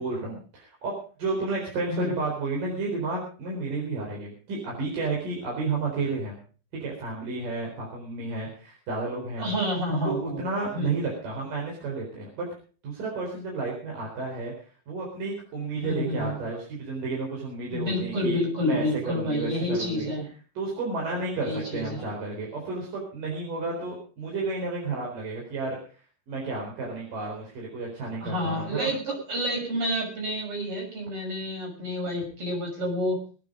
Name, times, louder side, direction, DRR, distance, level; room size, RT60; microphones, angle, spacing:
voice 1, 0.0-6.4 6.8-9.6 10.0-12.5 12.8-14.5 14.9-20.1 20.6-25.8 26.3-29.0, right 3 dB, 45° right, -2 dB, 5.6 m, -32 dB
voice 2, 9.4-10.4 10.7-11.0 15.7-16.4 17.7-20.2 21.4-22.0 28.2-33.2, equal, 30° right, 0 dB, 6.8 m, -29 dB
24.0 x 9.1 x 5.1 m, 0.40 s
omnidirectional pair, 5.3 m